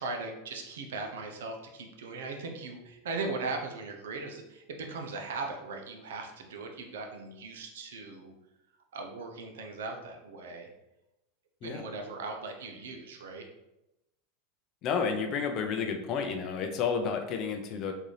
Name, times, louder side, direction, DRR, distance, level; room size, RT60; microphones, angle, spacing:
voice 1, 0.0-8.3 8.9-10.7 11.6-13.5, right 3 dB, 85° right, 3 dB, 0.6 m, -38 dB
voice 2, 14.8-17.9, left 6 dB, 45° left, 4 dB, 0.5 m, -31 dB
3.8 x 2.6 x 3.2 m, 0.92 s
supercardioid pair, 125°, 0 cm